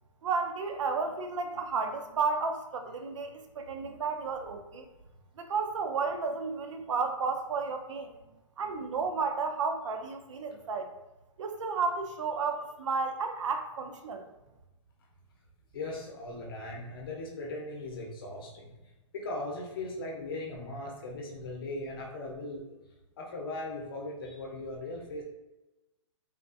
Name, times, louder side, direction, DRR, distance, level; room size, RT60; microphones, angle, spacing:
voice 1, 0.2-4.8 5.4-8.1 8.6-10.9 11.4-14.3, right 4 dB, 65° right, 6 dB, 0.4 m, -32 dB
voice 2, 15.7-18.6 19.1-22.6 23.2-25.2, left 2 dB, 45° left, -1 dB, 0.7 m, -38 dB
3.5 x 2.4 x 2.4 m, 1.0 s
hypercardioid pair, 170°, 17 cm